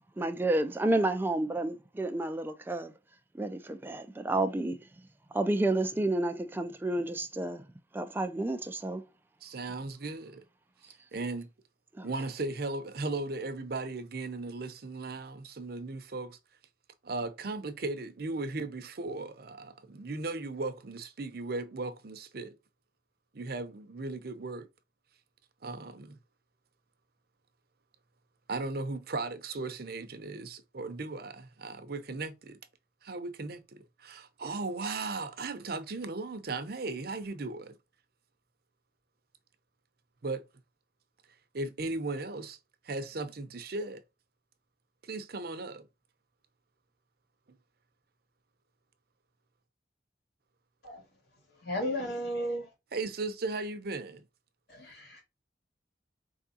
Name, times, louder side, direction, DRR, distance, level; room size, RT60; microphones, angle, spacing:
voice 1, 0.2-2.9 3.3-4.8 5.3-7.7 7.9-9.0 11.9-12.1, right 2 dB, 10° right, 0.3 m, -30 dB
voice 2, 9.4-10.4 10.8-11.5 12.0-16.4 17.0-22.5 23.3-24.7 25.6-26.2 28.5-32.6 33.0-37.8 40.2-40.4 41.5-42.6 42.8-44.0 45.0-45.9 52.9-54.2, right 3 dB, 60° right, 0.7 m, -37 dB
voice 3, 51.6-52.7 54.7-55.2, equal, 60° left, 2.2 m, -34 dB
4.7 x 3.5 x 2.7 m
head